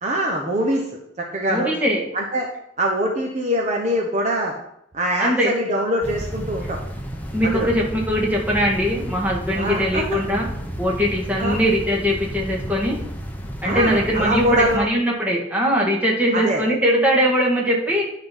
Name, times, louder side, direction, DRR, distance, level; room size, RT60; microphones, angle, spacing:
voice 1, 0.0-1.7 2.1-2.5 2.8-4.5 4.9-6.8 7.4-7.7 9.5-10.0 11.4-11.6 13.6-14.9 16.3-16.6, equal, 40° right, -1 dB, 1.1 m, -23 dB
voice 2, 1.5-2.0 5.2-5.5 7.3-10.5 10.8-13.0 13.6-18.0, equal, 10° right, -3 dB, 1.8 m, -21 dB
sound 1, 6.0-14.8, equal, 10° left, 0.9 m, -32 dB
10.0 x 4.0 x 5.4 m, 0.75 s
head